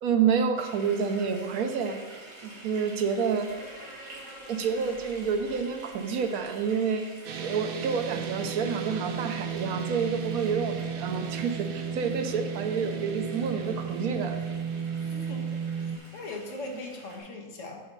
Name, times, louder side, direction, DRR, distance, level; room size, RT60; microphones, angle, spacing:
voice 1, 0.0-2.0 2.4-3.5 4.5-7.0 7.4-14.4, right 6 dB, 90° right, 6 dB, 1.2 m, -28 dB
sound 1, 0.6-17.2, right 2 dB, 50° right, 2.0 m, -48 dB
sound 2, 3.4-7.3, equal, 80° left, 2.5 m, -49 dB
sound 3, 7.2-16.0, right 6 dB, 70° right, 0.5 m, -34 dB
voice 2, 15.0-17.8, left 2 dB, 60° left, 1 dB, 1.4 m, -40 dB
7.1 x 4.2 x 5.3 m, 1.3 s
omnidirectional pair, 1.5 m